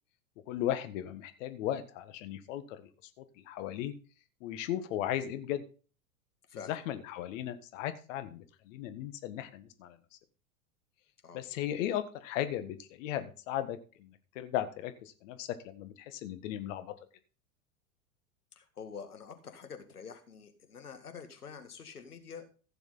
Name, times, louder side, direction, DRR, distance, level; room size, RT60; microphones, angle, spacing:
voice 1, 0.5-2.8 3.4-3.9 4.4-5.6 6.7-10.0 11.3-16.9, left 11 dB, 55° left, 10 dB, 1.6 m, -36 dB
voice 2, 18.6-22.5, left 6 dB, 85° left, 7 dB, 1.9 m, -47 dB
15.5 x 6.9 x 3.9 m, 0.36 s
hypercardioid pair, 90°, 44 cm